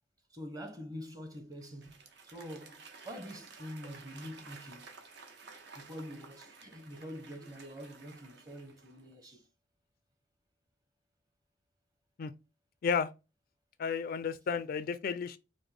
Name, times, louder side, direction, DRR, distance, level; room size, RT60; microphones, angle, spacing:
voice 1, 0.3-2.0 2.3-5.0 5.8-9.5, equal, 20° right, 0.8 m, -45 dB
Applause / Crowd, 1.3-9.1, right 4 dB, 65° right, 0.8 m, -53 dB
voice 2, 13.8-15.4, left 6 dB, 50° left, 0.3 m, -32 dB
5.0 x 2.1 x 3.3 m
head